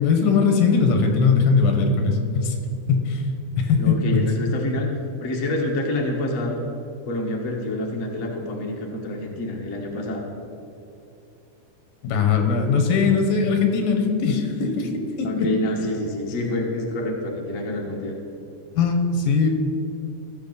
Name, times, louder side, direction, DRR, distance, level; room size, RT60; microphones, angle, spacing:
voice 1, 0.0-2.6 2.9-3.3 3.6-4.2 12.0-15.5 15.8-15.9 18.7-19.5, left 5 dB, 85° left, 4 dB, 2.8 m, -20 dB
voice 2, 3.8-4.9 5.2-6.6 7.1-10.2 15.2-18.1, left 1 dB, 70° left, 0 dB, 0.7 m, -27 dB
16.0 x 6.7 x 4.0 m, 2.7 s
omnidirectional pair, 3.7 m